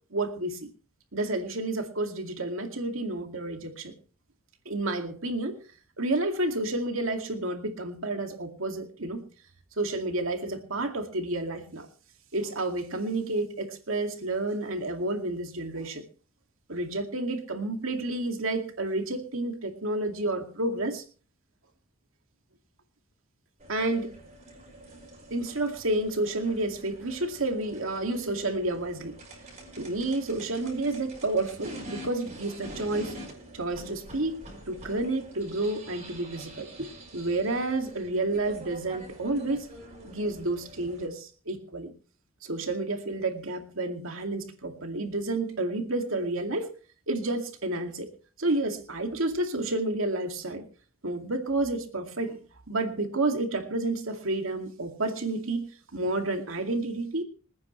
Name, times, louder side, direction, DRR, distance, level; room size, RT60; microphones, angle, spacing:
voice 1, 0.1-0.7 1.1-3.9 4.7-5.6 6.0-9.2 9.8-11.9 12.3-16.0 16.7-21.0 23.7-24.2 25.3-29.2 29.8-33.2 33.5-39.7 40.0-41.9 42.4-46.7 47.1-48.1 48.4-50.7 51.0-52.4 52.7-55.6 55.9-57.2, right 2 dB, 80° right, 5 dB, 2.3 m, -30 dB
sound 1, 23.6-41.1, right 1 dB, 35° right, 5.6 m, -46 dB
26.5 x 9.5 x 3.2 m, 0.39 s
head